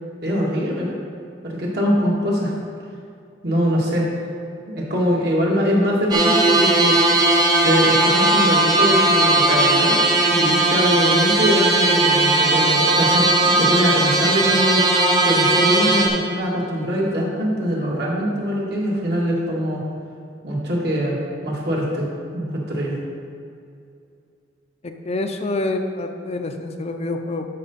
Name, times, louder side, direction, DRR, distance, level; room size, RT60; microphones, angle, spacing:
voice 1, 0.2-0.9 1.4-2.5 3.4-4.1 4.7-7.1 7.6-10.0 10.3-14.8 15.2-19.8 20.4-21.2 21.4-23.0, equal, 65° right, -4 dB, 2.1 m, -22 dB
sound 1, 6.1-16.1, right 2 dB, 20° right, 0.9 m, -17 dB
voice 2, 24.8-27.5, left 2 dB, 35° left, 5 dB, 0.6 m, -27 dB
12.0 x 5.7 x 4.1 m, 2.5 s
head